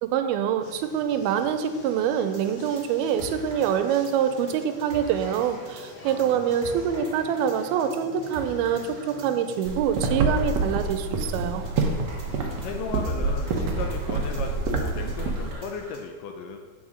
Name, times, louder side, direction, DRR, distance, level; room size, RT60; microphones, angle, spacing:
voice 1, 0.0-11.6, right 8 dB, 90° right, 8 dB, 2.5 m, -25 dB
sound 1, 0.6-9.7, left 1 dB, 50° left, 2.7 m, -46 dB
sound 2, 2.3-16.0, right 1 dB, 25° right, 0.9 m, -44 dB
voice 2, 6.0-6.9 12.3-16.6, left 5 dB, 80° left, 4 dB, 2.1 m, -36 dB
sound 3, 9.6-15.5, right 3 dB, 70° right, 1.6 m, -27 dB
8.8 x 5.0 x 7.1 m, 1.5 s
omnidirectional pair, 4.3 m